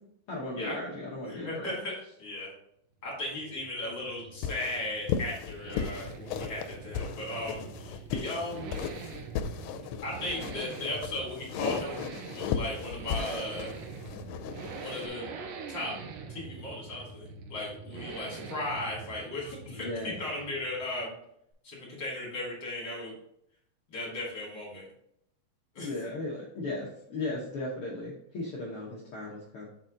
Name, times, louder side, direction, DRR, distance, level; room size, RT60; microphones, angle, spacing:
voice 1, 0.3-1.7 19.7-20.1 25.8-29.7, left 2 dB, 70° left, -4 dB, 1.3 m, -36 dB
voice 2, 1.2-1.9 2.2-2.5 3.0-8.8 9.7-13.7 14.8-15.3 15.7-16.0 16.3-21.2 21.6-23.1 23.9-24.8 25.7-25.9, left 1 dB, 35° left, -5 dB, 2.6 m, -37 dB
sound 1, 3.0-21.0, right 4 dB, 85° right, 2.4 m, -44 dB
sound 2, 4.4-15.1, left 7 dB, 90° left, 2.3 m, -36 dB
6.7 x 4.2 x 3.7 m, 0.74 s
omnidirectional pair, 3.9 m